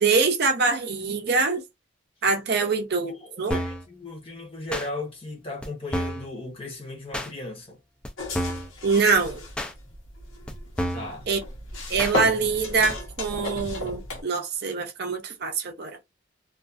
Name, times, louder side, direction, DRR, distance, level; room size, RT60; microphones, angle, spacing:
voice 1, 0.0-1.6 2.2-3.6 8.8-9.4 11.3-11.4 11.9-16.0, right 4 dB, 50° right, 0.5 m, -24 dB
voice 2, 3.1-7.8 10.9-11.3, left 2 dB, 30° left, 0.8 m, -37 dB
sound 1, 3.5-3.8 4.7-4.9 5.6-5.7 5.9-6.3 7.1-7.3 8.0-8.1 8.3-8.7 9.6-9.7 10.5-10.6 10.8-11.1 12.0-12.2 12.9-13.0, equal, 5° left, 0.3 m, -29 dB
sound 2, 8.2-14.2, left 2 dB, 80° left, 1.0 m, -34 dB
2.4 x 2.4 x 2.4 m
head